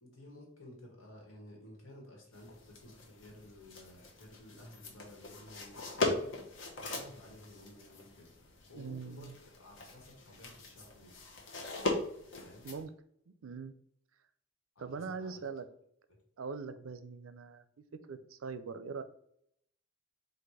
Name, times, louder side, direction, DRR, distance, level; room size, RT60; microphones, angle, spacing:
voice 1, 0.0-6.4 6.8-11.3 12.4-12.7 14.7-15.4 16.1-16.2, left 1 dB, 85° left, 0 dB, 1.6 m, -54 dB
sound 1, 2.3-12.8, left 2 dB, 65° left, 1.0 m, -40 dB
voice 2, 8.7-9.3 12.6-12.9 13.3-13.7 14.8-15.7 16.4-17.6 18.1-19.0, right 5 dB, 90° right, 11 dB, 0.5 m, -42 dB
4.1 x 2.5 x 4.8 m, 0.71 s
head